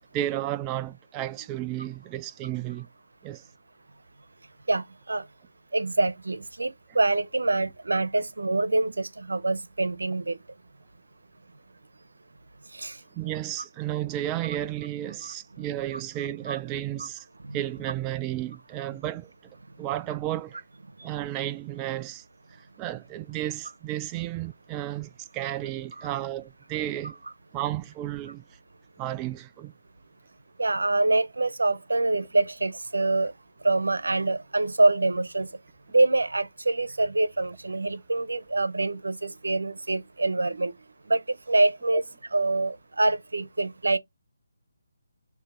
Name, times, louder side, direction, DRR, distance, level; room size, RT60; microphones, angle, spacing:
voice 1, 0.1-2.9 3.2-3.5 13.1-17.3 17.5-19.3 19.8-20.6 21.0-27.2 27.5-28.6 29.0-29.7, right 13 dB, 20° right, 0.3 m, -33 dB
voice 2, 4.7-5.2 5.7-10.4 12.7-13.0 16.5-16.6 17.4-17.6 30.6-33.3 33.6-35.5 35.9-40.7 41.1-42.0 42.3-44.0, right 2 dB, 85° right, 0.9 m, -25 dB
6.7 x 2.9 x 5.0 m
figure-of-eight pair, 155°, 0 cm